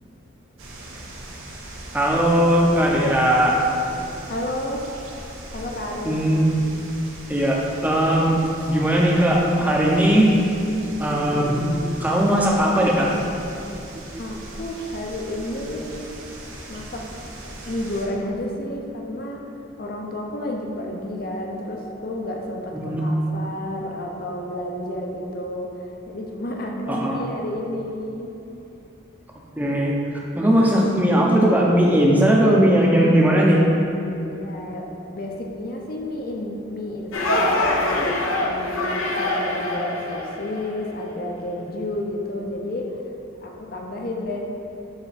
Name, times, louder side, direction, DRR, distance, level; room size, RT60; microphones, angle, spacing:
sound 1, 0.6-18.1, right 1 dB, 80° right, 1.0 m, -40 dB
voice 1, 1.9-3.6 6.0-6.5 7.3-8.4 8.7-10.3 11.0-13.2 22.7-23.1 26.9-27.2 29.6-29.9 30.4-33.7, equal, 10° right, -3 dB, 0.6 m, -18 dB
voice 2, 4.3-4.9 5.5-6.2 14.2-16.1 16.7-17.2 17.6-19.5 19.8-28.4 34.3-43.0 43.4-44.5, left 1 dB, 45° left, 1 dB, 0.6 m, -31 dB
sound 2, 37.1-40.7, left 1 dB, 85° left, 0.8 m, -24 dB
8.0 x 3.9 x 4.1 m, 2.9 s
head